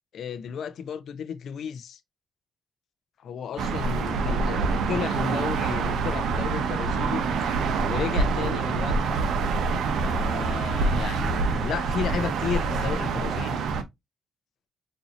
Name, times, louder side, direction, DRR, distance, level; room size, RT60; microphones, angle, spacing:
voice 1, 0.1-2.0 3.2-7.2 7.8-9.1 10.0-13.6, left 7 dB, 65° left, 0.5 m, -33 dB
sound 1, 3.6-13.8, right 4 dB, 75° right, 0.7 m, -26 dB
4.1 x 2.7 x 2.6 m
cardioid pair, 90°, 0 cm